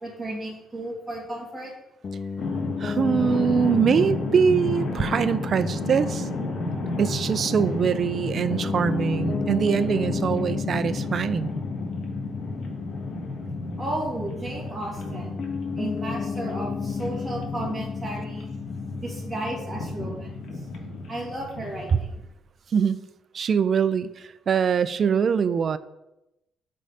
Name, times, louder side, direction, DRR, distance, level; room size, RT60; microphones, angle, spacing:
voice 1, 0.0-1.7 13.8-15.3 15.7-18.5 19.0-20.4 21.1-22.1, right 1 dB, 15° right, -3 dB, 2.1 m, -33 dB
Piano, 2.0-21.4, left 5 dB, 45° left, 0.3 m, -33 dB
sound 1, 2.4-22.1, left 2 dB, 70° left, 1.3 m, -33 dB
voice 2, 2.8-6.3 7.0-11.5 21.9-22.0 22.7-23.0 23.3-25.8, right 6 dB, 50° right, 14 dB, 0.3 m, -23 dB
5.4 x 3.7 x 5.4 m, 0.91 s
cardioid pair, 90°, 0 cm